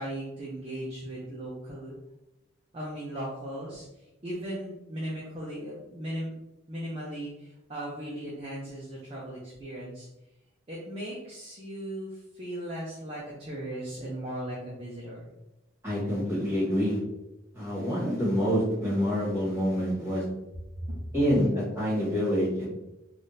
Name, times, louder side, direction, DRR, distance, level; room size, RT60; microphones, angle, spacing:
voice 1, 0.0-2.0 2.7-6.4 6.7-10.1 10.7-15.3 20.8-20.9, right 1 dB, 30° right, -6 dB, 0.5 m, -37 dB
voice 2, 15.8-17.0 17.5-20.2 21.1-22.7, equal, 15° right, -8 dB, 1.4 m, -27 dB
3.5 x 2.4 x 2.7 m, 0.96 s
head